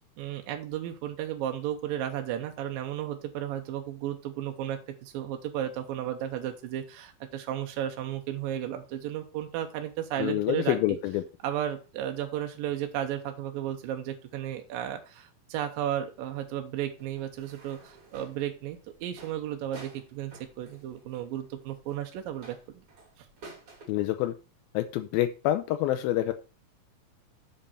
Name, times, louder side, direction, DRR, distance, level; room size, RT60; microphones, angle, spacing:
voice 1, 0.2-11.0 11.4-22.6 23.2-23.3, right 11 dB, 75° right, 5 dB, 2.4 m, -34 dB
voice 2, 10.2-11.2 23.9-24.3 24.7-26.3, left 14 dB, 80° left, 9 dB, 2.3 m, -27 dB
sound 1, 17.0-23.9, right 3 dB, 40° right, 2.9 m, -51 dB
7.2 x 5.3 x 5.6 m, 0.34 s
omnidirectional pair, 4.4 m